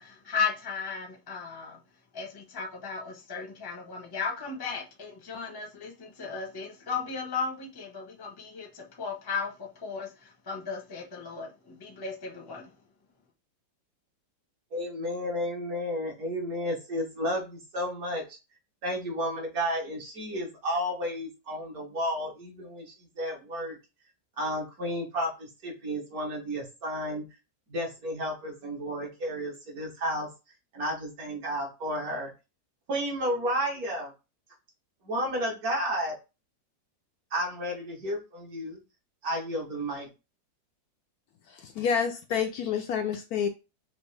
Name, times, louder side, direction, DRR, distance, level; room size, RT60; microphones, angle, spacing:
voice 1, 0.0-1.8 2.1-12.7, left 5 dB, 20° left, 0.6 m, -35 dB
voice 2, 14.7-18.4 18.8-23.8 24.4-27.2 27.7-30.3 30.7-32.3 32.9-34.1 35.0-36.1 37.3-38.8 39.2-40.1, equal, 55° right, 1.5 m, -32 dB
voice 3, 41.5-43.5, left 7 dB, 75° left, 0.9 m, -28 dB
5.2 x 2.5 x 3.2 m
omnidirectional pair, 2.0 m